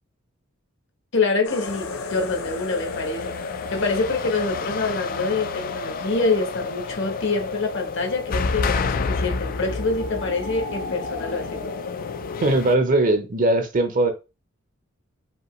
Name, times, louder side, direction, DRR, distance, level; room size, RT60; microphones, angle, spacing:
voice 1, 1.1-3.4 3.7-11.8, left 3 dB, 60° left, 1.1 m, -26 dB
sound 1, 1.4-12.6, left 3 dB, 85° left, 0.6 m, -33 dB
sound 2, 1.7-12.7, left 4 dB, 45° left, 0.4 m, -32 dB
voice 2, 12.4-14.1, right 2 dB, 40° right, 0.7 m, -20 dB
5.2 x 2.8 x 3.1 m
head